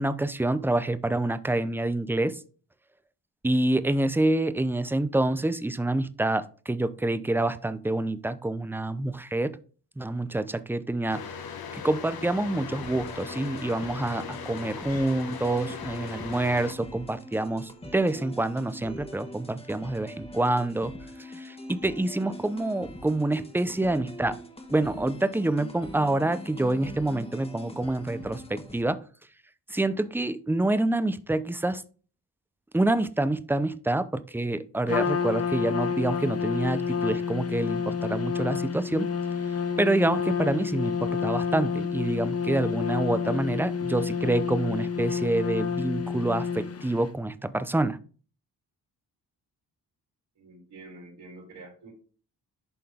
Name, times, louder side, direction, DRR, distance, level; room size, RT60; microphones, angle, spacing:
voice 1, 0.0-2.4 3.4-9.6 10.0-11.4 11.7-20.9 21.4-24.4 24.7-29.0 29.7-31.8 32.7-39.1 39.8-48.0, right 2 dB, 5° right, 14 dB, 0.5 m, -27 dB
sound 1, 11.1-16.7, left 6 dB, 60° left, 0.9 m, -39 dB
sound 2, 12.8-28.8, left 1 dB, 15° left, 1.2 m, -43 dB
Trumpet, 34.9-47.0, left 6 dB, 35° left, 0.7 m, -29 dB
voice 2, 50.4-51.9, right 2 dB, 75° right, -3 dB, 4.1 m, -47 dB
11.0 x 3.8 x 3.6 m, 0.40 s
cardioid pair, 65°, 41 cm